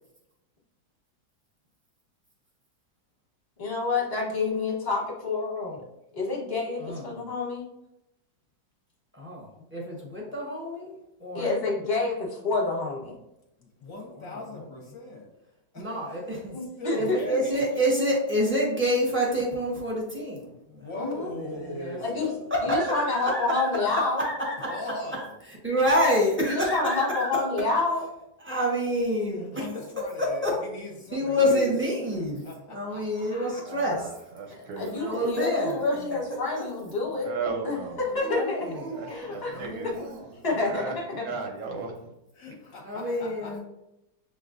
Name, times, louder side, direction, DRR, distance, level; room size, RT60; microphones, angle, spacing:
voice 1, 3.6-5.9 6.1-7.6 11.3-13.2 16.5-17.2 20.9-21.3 22.0-22.3 22.6-24.2 26.5-28.0 34.8-37.3 37.6-38.7 39.1-39.6 39.8-39.9 40.4-41.3, left 3 dB, 30° left, -4 dB, 1.0 m, -28 dB
voice 2, 6.8-7.2 9.2-10.9 11.2-11.5 15.8-16.5 16.9-20.9 21.8-22.0 22.5-23.9 24.2-24.8 25.2-25.3 25.6-27.5 28.4-29.5 30.2-30.5 31.1-32.4 32.7-34.0 34.8-35.8 36.6-36.7 38.3-39.0 39.5-40.1 42.8-43.6, equal, 10° right, -2 dB, 0.7 m, -27 dB
voice 3, 13.6-15.3 15.7-17.6 20.8-22.7 23.2-23.4 24.6-25.3 29.4-31.7 32.4-33.6 38.9-39.8 42.3-43.6, left 1 dB, 60° left, 0 dB, 1.0 m, -40 dB
voice 4, 33.6-35.1 35.7-36.1 37.2-38.0 38.9-39.9 40.6-42.1, right 4 dB, 65° right, 2 dB, 0.8 m, -36 dB
Dog, 35.8-37.3 38.1-40.5, right 3 dB, 90° right, 1.3 m, -42 dB
6.8 x 2.3 x 2.5 m, 0.88 s
omnidirectional pair, 1.9 m